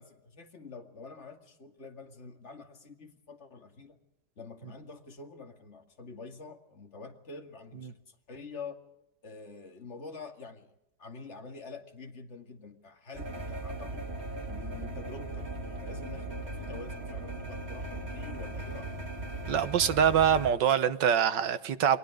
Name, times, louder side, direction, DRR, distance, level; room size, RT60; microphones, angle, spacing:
voice 1, 0.0-4.0 4.4-8.8 9.2-10.7 11.0-14.1 14.5-15.5 15.8-19.0, left 4 dB, 40° left, 2.5 m, -46 dB
sound 1, 13.1-20.5, right 1 dB, 35° right, 2.5 m, -38 dB
voice 2, 19.5-22.0, right 8 dB, 85° right, 1.8 m, -24 dB
29.5 x 22.5 x 5.0 m
omnidirectional pair, 1.9 m